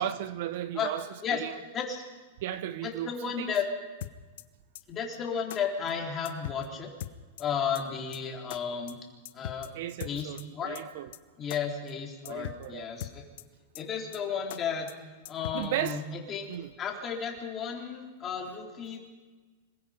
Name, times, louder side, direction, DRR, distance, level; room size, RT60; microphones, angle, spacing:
voice 1, 0.0-1.1 1.3-1.5 2.4-3.5 9.7-11.1 12.2-12.9 15.5-16.0 16.5-16.7, right 11 dB, 55° right, 14 dB, 0.9 m, -35 dB
voice 2, 1.7-2.0 2.8-3.7 4.9-6.9 7.4-9.0 9.3-9.7 10.0-10.8 11.4-13.2 13.8-14.9 15.3-16.5 16.8-19.1, left 7 dB, 25° left, 0 dB, 3.9 m, -33 dB
sound 1, 4.0-4.4 4.7-4.8 5.1-5.2 5.5-5.6 5.9-6.0 6.2-6.7 7.0-7.4 7.7-7.8 8.1-8.2 8.5-8.6 8.9-9.0 9.2-9.7 10.0-10.4 10.7-10.8 11.1-11.2 11.5-11.6 11.9-12.0 12.2-12.7 13.0-13.4 13.7-13.8 14.1-14.2 14.5-14.6 14.9-15.0 15.2-15.7, left 13 dB, 65° left, 1.0 m, -39 dB
26.0 x 21.5 x 5.3 m, 1.3 s
supercardioid pair, 150°, 0 cm